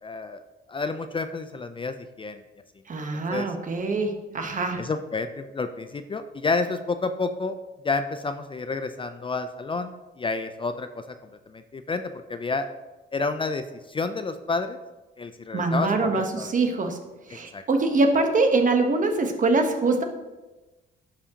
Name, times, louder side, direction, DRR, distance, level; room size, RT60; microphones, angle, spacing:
voice 1, 0.0-0.4 0.7-2.4 3.3-3.5 4.8-7.5 7.8-9.9 10.2-11.2 11.5-12.7 13.1-14.8 15.2-16.5 17.5-17.6, left 3 dB, 25° left, 9 dB, 0.4 m, -30 dB
voice 2, 2.9-4.8 15.5-17.0 17.3-20.0, right 3 dB, 40° right, 5 dB, 1.0 m, -23 dB
11.0 x 4.9 x 2.9 m, 1.1 s
cardioid pair, 90°, 20 cm